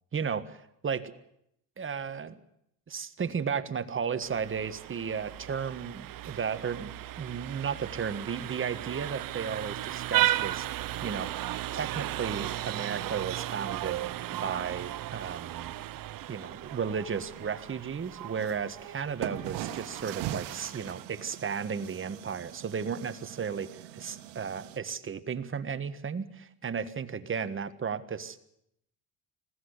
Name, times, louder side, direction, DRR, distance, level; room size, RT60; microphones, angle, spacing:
voice 1, 0.1-1.1 1.8-2.4 2.9-11.3 11.7-15.7 16.3-28.4, right 6 dB, 30° right, 11 dB, 1.5 m, -34 dB
Vehicle horn car horn honking, 4.2-21.0, right 14 dB, 50° right, 0.9 m, -35 dB
sound 1, 18.4-18.5 19.2-24.8, right 13 dB, 80° right, 1.6 m, -40 dB
20.5 x 15.0 x 9.9 m, 0.77 s
supercardioid pair, 90°, 42 cm